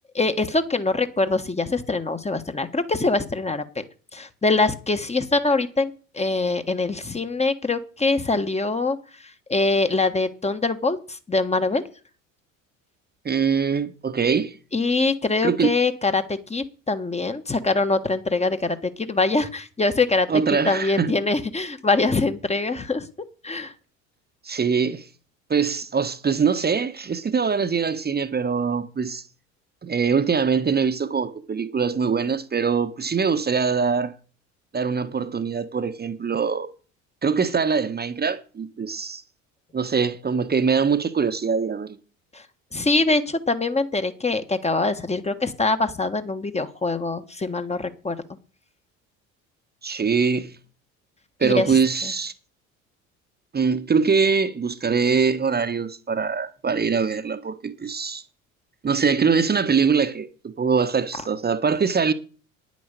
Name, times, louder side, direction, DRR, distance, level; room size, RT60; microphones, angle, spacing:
voice 1, 0.1-3.9 4.1-11.8 14.7-23.1 23.4-23.7 42.3-42.4 42.7-48.2 51.4-52.1, left 3 dB, 15° left, 1.4 m, -24 dB
voice 2, 13.2-14.6 15.4-15.7 20.3-21.1 24.4-25.1 25.5-29.2 29.8-34.1 34.7-36.7 37.2-39.2 39.7-42.0 49.8-50.5 51.4-52.3 53.5-58.2 58.8-62.1, right 5 dB, 25° right, 1.2 m, -23 dB
10.0 x 9.5 x 6.7 m
hypercardioid pair, 65°, 41 cm